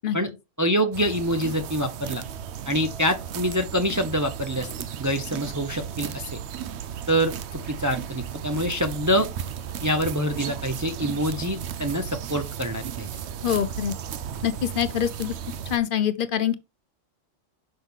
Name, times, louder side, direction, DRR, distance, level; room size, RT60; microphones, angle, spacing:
voice 1, 0.6-2.2 2.7-6.4 7.1-9.3 9.8-13.1, equal, 25° right, 0.4 m, -26 dB
sound 1, 0.9-15.8, right 9 dB, 65° right, 0.9 m, -35 dB
voice 2, 13.4-13.9 14.4-15.3 15.7-16.5, left 10 dB, 55° left, 0.6 m, -25 dB
5.9 x 5.4 x 3.5 m
omnidirectional pair, 1.3 m